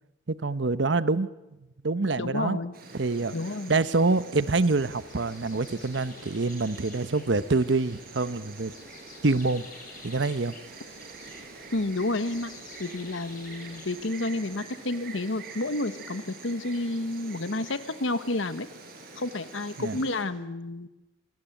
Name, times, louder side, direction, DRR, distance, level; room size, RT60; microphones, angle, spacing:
voice 1, 0.3-1.3 1.8-2.6 2.9-3.3 3.7-8.7 9.2-9.6 10.0-10.5 19.8-20.0, right 3 dB, 65° right, 15 dB, 0.9 m, -26 dB
voice 2, 2.2-2.7 3.3-3.7 11.7-12.5 12.8-18.7 19.2-20.9, left 2 dB, 85° left, 12 dB, 1.2 m, -30 dB
Insect, 2.7-20.2, right 3 dB, 50° right, 5.4 m, -46 dB
sound 1, 4.8-14.6, left 4 dB, 45° left, 7.3 m, -51 dB
26.5 x 18.5 x 9.0 m, 1.0 s
head